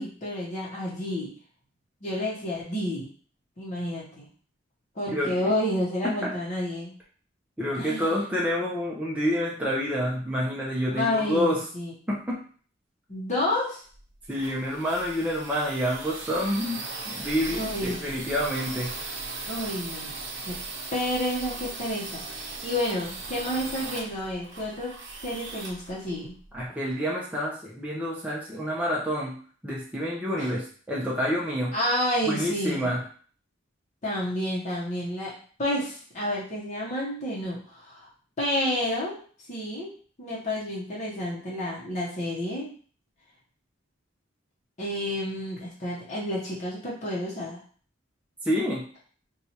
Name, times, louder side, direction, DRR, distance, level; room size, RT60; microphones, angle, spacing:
voice 1, 0.0-1.3 2.0-3.1 3.6-4.3 4.9-6.9 7.7-8.2 10.9-11.9 13.1-13.8 17.5-18.0 19.5-20.2 20.4-20.6 20.9-26.3 30.4-30.5 31.7-32.9 34.0-38.1 38.4-39.2 39.5-39.9 40.2-42.7 44.8-47.6, left 1 dB, 40° left, -6 dB, 0.8 m, -30 dB
voice 2, 6.0-6.3 7.6-11.6 12.1-12.4 14.3-16.8 17.0-19.0 26.5-29.4 29.6-31.7 32.3-33.0 48.4-48.8, equal, 10° right, -5 dB, 0.5 m, -28 dB
sound 1, 13.9-26.7, right 3 dB, 65° right, 0.7 m, -38 dB
4.3 x 2.3 x 2.8 m, 0.44 s
head